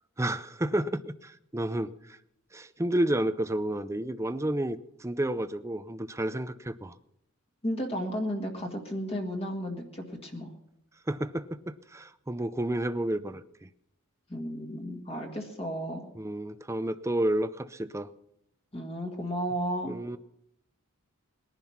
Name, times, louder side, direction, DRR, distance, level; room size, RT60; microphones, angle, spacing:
voice 1, 0.2-1.9 2.5-6.9 11.1-13.7 16.2-18.1 19.8-20.2, right 1 dB, 15° right, 13 dB, 0.6 m, -31 dB
voice 2, 7.6-10.5 14.3-16.1 18.7-19.9, equal, 25° left, 2 dB, 1.8 m, -33 dB
20.5 x 11.0 x 5.8 m, 0.80 s
head